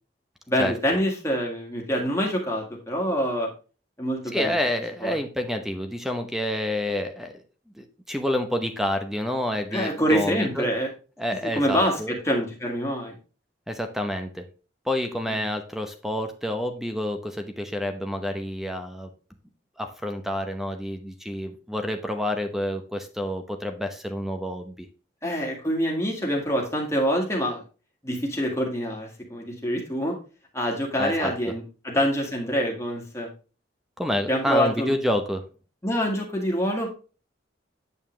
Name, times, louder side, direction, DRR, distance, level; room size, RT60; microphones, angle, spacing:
voice 1, 0.5-3.5 4.0-4.6 5.0-5.2 9.7-10.9 11.3-13.2 15.3-15.4 25.2-27.6 28.0-30.2 30.5-33.3 34.3-34.9 35.8-36.9, equal, 15° left, 0 dB, 1.8 m, -26 dB
voice 2, 4.3-7.4 7.8-10.7 11.2-12.1 13.7-14.5 14.8-19.1 19.8-24.9 31.0-31.3 34.0-35.4, left 1 dB, ahead, 6 dB, 0.8 m, -28 dB
8.8 x 5.6 x 3.2 m, 0.35 s
head